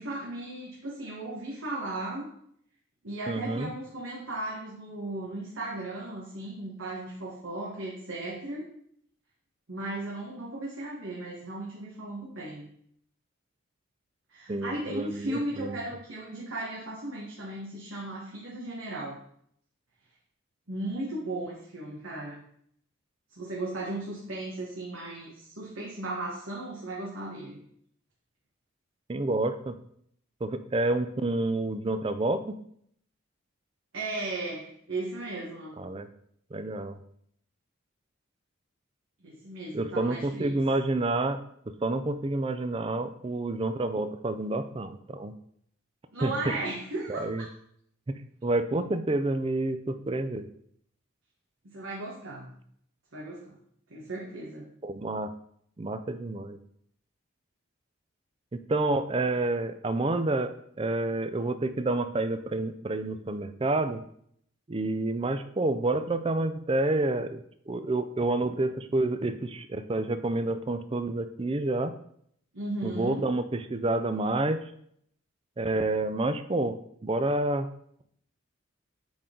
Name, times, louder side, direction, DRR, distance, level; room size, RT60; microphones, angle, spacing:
voice 1, 0.0-2.3 3.0-8.7 9.7-12.7 14.3-19.2 20.7-22.4 23.4-27.6 33.9-35.8 39.2-40.5 46.1-47.3 51.6-52.6 53.1-53.6 53.9-54.7 72.5-73.3, right 2 dB, 70° right, -4 dB, 1.4 m, -36 dB
voice 2, 3.3-3.7 14.5-15.8 29.1-29.7 30.4-32.6 35.8-36.1 36.5-37.0 39.7-41.4 41.7-45.3 46.2-46.3 47.1-47.4 48.4-50.5 54.8-55.3 55.8-56.6 58.5-60.5 60.8-64.0 64.7-67.4 67.7-71.9 72.8-74.6 75.6-77.7, right 2 dB, 25° right, 10 dB, 0.4 m, -29 dB
8.6 x 3.8 x 3.8 m, 0.68 s
head